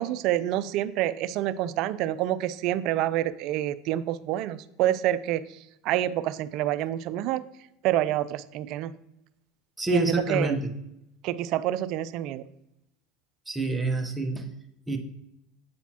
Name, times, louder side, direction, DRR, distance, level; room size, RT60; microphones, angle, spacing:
voice 1, 0.0-5.4 5.8-7.4 7.8-8.9 9.9-10.6 11.2-12.4, right 13 dB, 55° right, 15 dB, 0.3 m, -27 dB
voice 2, 9.8-10.7 13.5-14.5 14.9-15.0, right 2 dB, 10° right, 5 dB, 0.8 m, -27 dB
8.0 x 4.1 x 2.8 m, 0.83 s
hypercardioid pair, 100°, 0 cm